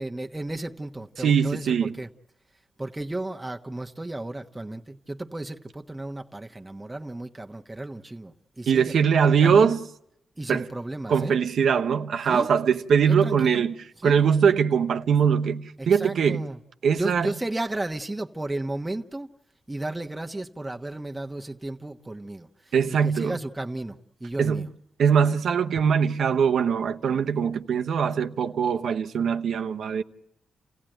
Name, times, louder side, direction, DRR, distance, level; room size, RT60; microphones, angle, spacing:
voice 1, 0.0-2.1 2.8-9.8 10.4-11.4 12.2-12.6 13.1-13.7 14.0-14.3 15.8-16.6 16.9-19.3 19.7-24.7, right 2 dB, 15° right, 1.3 m, -34 dB
voice 2, 1.2-1.9 8.7-9.8 10.5-10.7 11.1-13.7 14.0-16.4 16.8-17.3 22.7-23.4 24.4-24.6 25.0-30.0, right 7 dB, 75° right, 1.0 m, -22 dB
29.5 x 16.0 x 9.2 m
cardioid pair, 65°, 0 cm